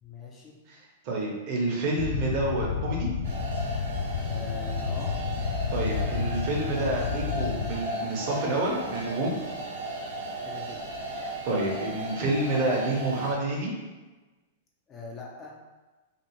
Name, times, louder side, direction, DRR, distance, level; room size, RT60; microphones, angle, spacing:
voice 1, 0.0-0.6 4.3-5.2 10.4-10.8 14.9-15.6, left 3 dB, 20° left, -2 dB, 0.5 m, -42 dB
voice 2, 0.7-3.1 5.7-9.4 11.1-13.7, right 2 dB, 45° right, -2 dB, 0.8 m, -29 dB
sound 1, 2.0-7.8, left 6 dB, 85° left, 0.3 m, -31 dB
sound 2, 3.2-13.3, right 2 dB, 85° right, 0.7 m, -36 dB
2.5 x 2.4 x 3.0 m, 1.2 s
hypercardioid pair, 150°, 0 cm